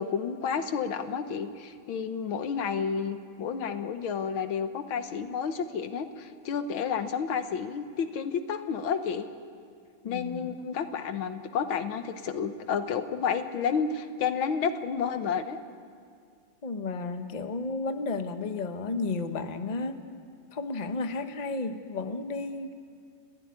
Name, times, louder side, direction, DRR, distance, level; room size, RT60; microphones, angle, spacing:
voice 1, 0.0-9.3 10.0-15.6, left 6 dB, 90° left, 9 dB, 1.9 m, -31 dB
voice 2, 10.0-10.5 16.6-20.0 20.5-22.7, left 3 dB, 30° left, 7 dB, 0.9 m, -33 dB
29.5 x 14.5 x 9.6 m, 2.2 s
omnidirectional pair, 2.2 m